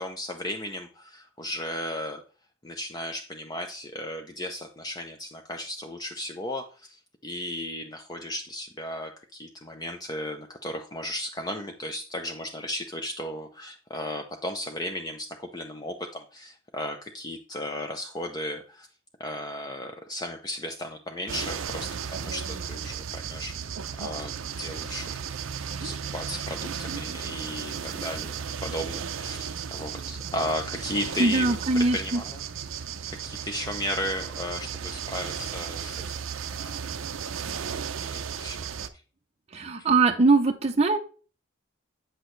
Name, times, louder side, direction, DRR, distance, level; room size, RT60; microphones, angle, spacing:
voice 1, 0.0-2.2 2.6-18.9 19.2-25.1 25.8-32.4 32.7-36.0 36.6-36.8 38.0-38.6 39.5-39.9, left 1 dB, 20° left, 4 dB, 0.5 m, -35 dB
sound 1, 21.3-38.9, right 7 dB, 90° right, 0.5 m, -35 dB
voice 2, 31.2-32.2 39.5-41.0, right 3 dB, 30° right, 4 dB, 0.5 m, -22 dB
7.9 x 6.0 x 3.1 m, 0.38 s
head